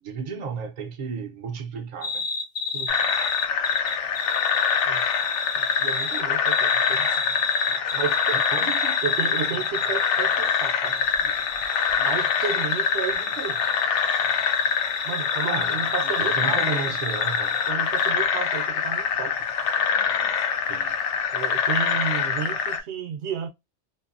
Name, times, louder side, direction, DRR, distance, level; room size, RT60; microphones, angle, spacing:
voice 1, 0.0-2.2 8.3-9.0 15.5-15.7 16.2-17.6 20.7-21.0, right 5 dB, 50° right, 0.5 m, -33 dB
sound 1, 2.0-17.7 18.0-18.1, left 4 dB, 45° left, 0.5 m, -32 dB
sound 2, 2.9-22.8, left 7 dB, 80° left, 0.9 m, -25 dB
voice 2, 5.6-7.1 7.9-8.4 9.0-11.0 11.4-11.5 12.0-13.6 15.0-16.8 17.7-19.5 21.3-23.5, right 7 dB, 70° right, 0.9 m, -32 dB
2.7 x 2.6 x 2.4 m
omnidirectional pair, 1.2 m